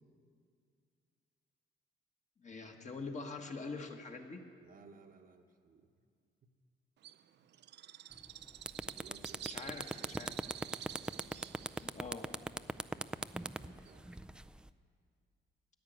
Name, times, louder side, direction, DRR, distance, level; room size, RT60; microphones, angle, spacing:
voice 1, 2.4-4.4 9.5-10.3 11.8-12.3, left 4 dB, 35° left, 3 dB, 1.5 m, -44 dB
voice 2, 4.6-5.9 6.4-6.5 7.1-7.5 8.9-10.6 13.6-14.2, right 5 dB, 45° right, 5 dB, 1.0 m, -60 dB
Bird, 7.0-14.3, right 11 dB, 60° right, 0.5 m, -50 dB
sound 1, 8.2-8.3 8.6-14.7, right 1 dB, 5° right, 0.4 m, -39 dB
14.5 x 9.6 x 8.0 m, 2.3 s
cardioid pair, 90°, 20 cm